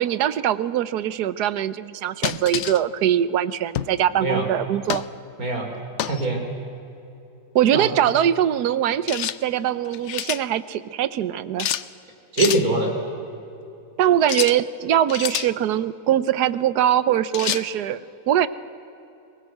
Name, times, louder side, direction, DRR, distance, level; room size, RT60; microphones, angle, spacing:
voice 1, 0.0-5.0 7.5-11.7 14.0-18.5, right 10 dB, 90° right, 16 dB, 1.3 m, -22 dB
sound 1, 2.2-2.8 3.7-4.0 4.9-5.1 6.0-6.3 9.1-9.4 9.9-10.4 11.6-11.9 12.4-12.7 14.2-14.6 15.1-15.5 17.3-17.7, left 10 dB, 60° left, 0.8 m, -27 dB
voice 2, 5.4-5.7 6.0-6.4 7.7-7.9 12.3-12.9, right 2 dB, 65° right, 2 dB, 4.1 m, -22 dB
23.0 x 20.0 x 7.9 m, 2.8 s
omnidirectional pair, 1.7 m